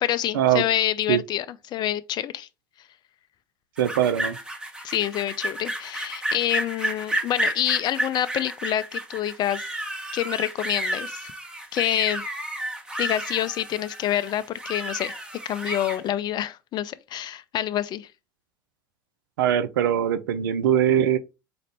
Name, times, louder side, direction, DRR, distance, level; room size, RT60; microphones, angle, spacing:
voice 1, 0.0-2.5 4.8-9.7 10.1-11.3 11.7-12.2 13.0-15.1 15.4-18.1, left 12 dB, 40° left, 0.4 m, -27 dB
sound 1, 3.8-16.0, right 1 dB, 5° right, 1.0 m, -32 dB
voice 2, 3.8-4.4 19.4-21.2, right 10 dB, 75° right, 0.5 m, -21 dB
4.1 x 2.5 x 3.3 m
hypercardioid pair, 80°, 11 cm